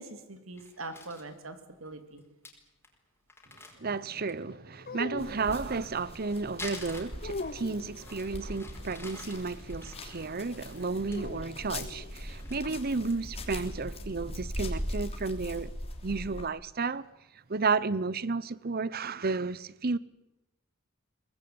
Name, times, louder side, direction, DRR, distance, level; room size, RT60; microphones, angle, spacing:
voice 1, 0.0-2.2, right 2 dB, 80° right, 3.1 m, -43 dB
Crumpling crinkling, 0.6-1.3 1.9-2.0 2.2-2.3 2.5-2.6 2.8-3.0 3.3-4.5 5.7-7.6 8.0-11.2 11.6-11.9 12.1-13.4 13.8-13.9 14.3-14.7, left 3 dB, 10° left, 4.9 m, -48 dB
voice 2, 3.8-15.7 16.0-17.0 17.5-20.0, right 4 dB, 45° right, 0.9 m, -32 dB
sound 1, 4.8-5.9 7.2-8.0 11.1-12.1, left 2 dB, 45° left, 0.9 m, -40 dB
sound 2, 5.2-16.5, left 1 dB, 30° left, 3.4 m, -40 dB
23.0 x 20.0 x 9.6 m
head